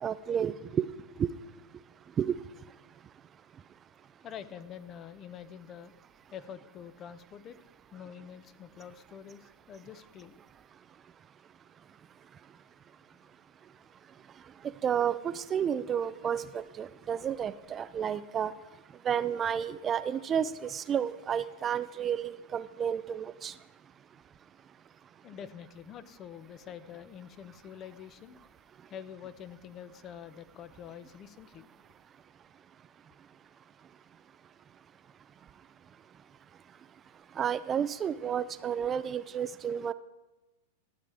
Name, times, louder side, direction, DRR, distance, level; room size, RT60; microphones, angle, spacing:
voice 1, 0.0-0.8 1.2-1.3 2.2-2.4 14.8-18.5 19.0-23.5 37.4-39.9, right 8 dB, 25° right, 14 dB, 0.3 m, -31 dB
voice 2, 4.2-5.9 6.3-7.6 7.9-10.4 25.2-28.4 28.9-31.7, left 8 dB, 35° left, 14 dB, 0.7 m, -46 dB
12.5 x 7.5 x 4.9 m, 1.1 s
hypercardioid pair, 115°, 0 cm